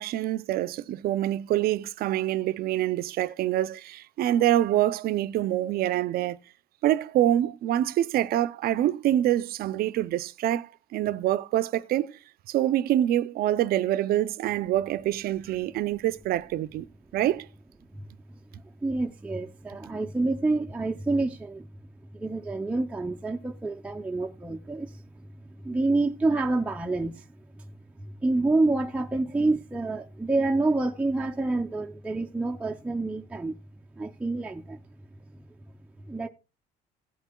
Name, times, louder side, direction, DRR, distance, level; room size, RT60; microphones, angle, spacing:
voice 1, 0.0-6.4 6.8-12.2 12.5-16.9 17.1-17.5, right 13 dB, 65° right, 0.4 m, -26 dB
voice 2, 18.8-21.7 22.1-25.3 25.6-27.2 27.6-27.7 28.0-33.6 34.0-34.8 36.1-36.3, right 2 dB, 10° right, 0.4 m, -28 dB
16.0 x 8.1 x 2.2 m
cardioid pair, 110°, 17 cm